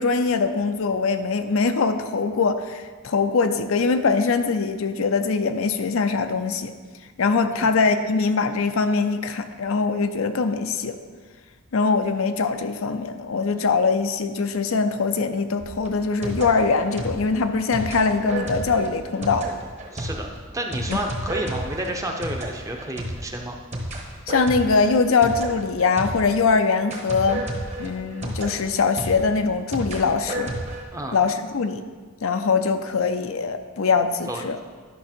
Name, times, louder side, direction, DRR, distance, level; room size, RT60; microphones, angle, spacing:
voice 1, 0.0-6.7 7.2-11.0 11.7-19.5 20.9-21.1 24.3-27.5 27.8-30.5 31.1-31.8 32.2-34.6, left 4 dB, 70° left, 8 dB, 0.5 m, -22 dB
sound 1, 15.6-26.5 26.9-30.8, right 1 dB, 30° right, 1.2 m, -32 dB
voice 2, 19.9-20.3 20.5-23.6 30.9-31.2 34.3-34.4, right 1 dB, 15° right, 2 dB, 0.8 m, -30 dB
11.0 x 5.9 x 4.4 m, 1.5 s
head